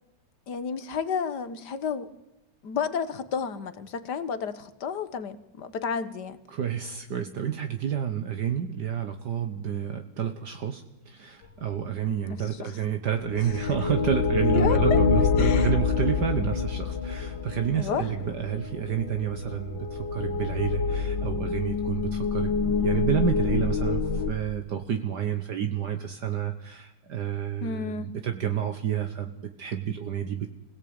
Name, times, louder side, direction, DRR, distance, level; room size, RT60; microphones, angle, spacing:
voice 1, 0.5-2.1 2.6-6.4 12.3-12.8 14.5-14.8 15.4-15.7 17.7-18.1 27.6-28.1, left 6 dB, 60° left, 12 dB, 1.9 m, -31 dB
voice 2, 6.5-30.5, right 8 dB, 60° right, 6 dB, 1.7 m, -30 dB
sound 1, 13.2-24.3, left 5 dB, 80° left, 2.2 m, -26 dB
25.5 x 17.5 x 8.9 m, 0.94 s
omnidirectional pair, 2.1 m